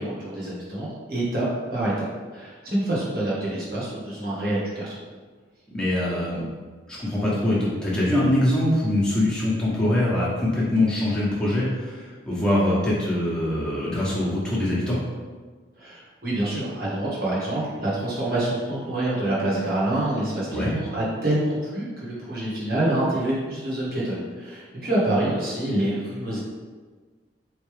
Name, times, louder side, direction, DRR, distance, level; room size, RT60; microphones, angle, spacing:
voice 1, 0.0-1.5 1.7-4.9 15.8-26.4, right 1 dB, 50° right, -7 dB, 1.5 m, -26 dB
voice 2, 5.7-6.5 6.9-15.0 20.5-20.7, left 1 dB, 5° left, -8 dB, 1.1 m, -23 dB
4.4 x 3.2 x 3.3 m, 1.4 s
head